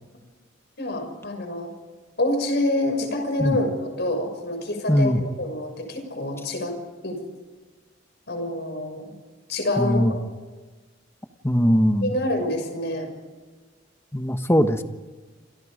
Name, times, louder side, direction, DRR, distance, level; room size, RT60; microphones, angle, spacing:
voice 1, 0.8-1.7 2.2-6.8 7.0-7.2 8.3-9.1 9.5-10.2 12.0-13.1, left 1 dB, 60° left, 5 dB, 6.7 m, -27 dB
voice 2, 4.9-5.2 9.8-10.1 11.4-12.2 14.1-14.8, equal, 15° left, 7 dB, 1.4 m, -20 dB
28.5 x 28.0 x 5.2 m, 1.3 s
head